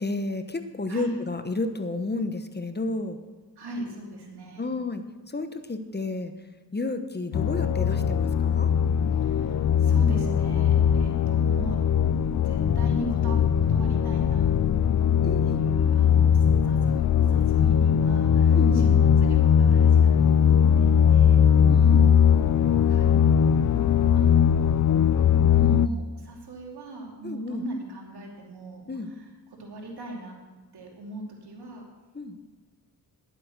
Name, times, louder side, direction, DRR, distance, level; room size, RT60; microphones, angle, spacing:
voice 1, 0.0-3.2 4.6-6.3 6.7-8.7 15.2-15.6 18.5-19.0 21.7-22.1 25.6-26.0 27.2-27.6 28.9-29.1 32.1-32.4, left 3 dB, 25° left, 9 dB, 1.1 m, -31 dB
voice 2, 3.6-4.7 9.1-11.8 12.4-13.4 13.7-14.5 15.4-17.0 17.3-20.5 20.8-21.4 22.5-23.2 23.6-23.9 24.1-25.1 25.5-29.3 29.6-30.4 30.7-31.8, right 1 dB, 75° right, 0 dB, 2.9 m, -39 dB
sound 1, 7.3-25.9, left 8 dB, 50° left, 0.5 m, -20 dB
11.5 x 8.1 x 6.5 m, 1.3 s
cardioid pair, 55°, 39 cm